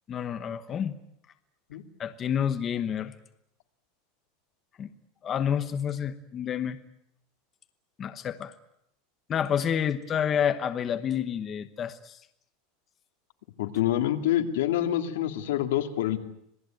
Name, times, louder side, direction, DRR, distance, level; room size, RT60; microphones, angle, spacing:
voice 1, 0.1-1.0 2.0-3.1 4.8-4.9 5.2-6.8 8.0-8.5 9.3-12.2, left 8 dB, 20° left, 9 dB, 1.0 m, -29 dB
voice 2, 13.6-16.2, left 12 dB, 80° left, 6 dB, 2.5 m, -26 dB
26.5 x 19.0 x 9.1 m, 0.75 s
supercardioid pair, 180°, 0 cm